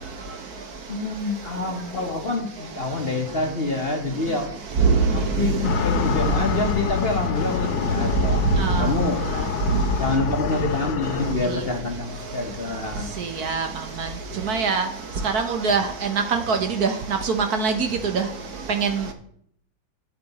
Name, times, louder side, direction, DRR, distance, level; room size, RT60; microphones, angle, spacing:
voice 1, 0.9-4.6 5.1-8.4 8.8-9.3 10.0-13.1, left 2 dB, 35° left, 3 dB, 1.1 m, -27 dB
sound 1, 5.6-11.3, left 7 dB, 75° left, 1.2 m, -26 dB
voice 2, 14.5-14.9 15.3-15.8 16.3-16.9 17.2-17.7 18.1-18.2 18.8-18.9, right 5 dB, 55° right, 6 dB, 1.4 m, -21 dB
8.9 x 8.4 x 4.2 m, 0.65 s
omnidirectional pair, 2.1 m